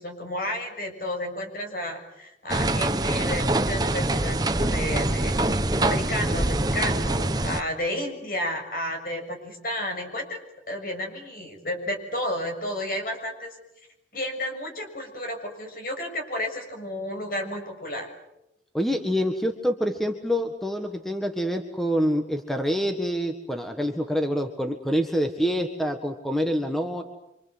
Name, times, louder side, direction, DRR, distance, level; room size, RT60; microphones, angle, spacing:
voice 1, 0.0-5.4 5.8-10.4 10.7-13.6 14.1-18.1, left 1 dB, 50° left, 4 dB, 6.8 m, -32 dB
sound 1, 2.5-7.6, right 2 dB, 20° right, 1.0 m, -24 dB
voice 2, 18.7-27.0, equal, ahead, 5 dB, 1.7 m, -26 dB
27.0 x 26.5 x 8.1 m, 0.86 s
head